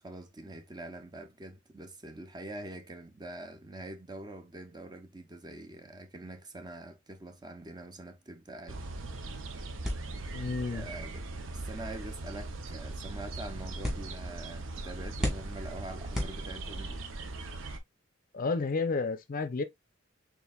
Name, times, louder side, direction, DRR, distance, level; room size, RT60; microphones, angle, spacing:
voice 1, 0.0-8.8 10.7-11.2 11.5-17.0, right 1 dB, 20° right, 0.6 m, -44 dB
sound 1, 8.7-17.8, right 2 dB, 75° right, 0.7 m, -40 dB
sound 2, 9.8-17.0, left 1 dB, ahead, 1.8 m, -40 dB
voice 2, 10.3-10.9 18.3-19.6, left 4 dB, 45° left, 0.5 m, -31 dB
4.5 x 3.7 x 2.3 m
head